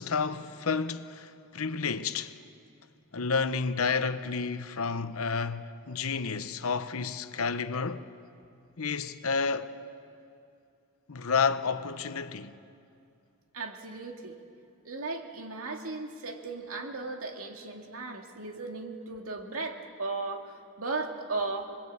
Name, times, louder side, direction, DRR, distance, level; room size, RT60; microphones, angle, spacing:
voice 1, 0.0-2.3 3.1-8.1 8.8-9.7 11.1-12.5, left 5 dB, 80° left, 0.9 m, -30 dB
voice 2, 13.5-14.4 14.8-21.6, right 3 dB, 85° right, 2.3 m, -36 dB
25.5 x 21.0 x 8.6 m
head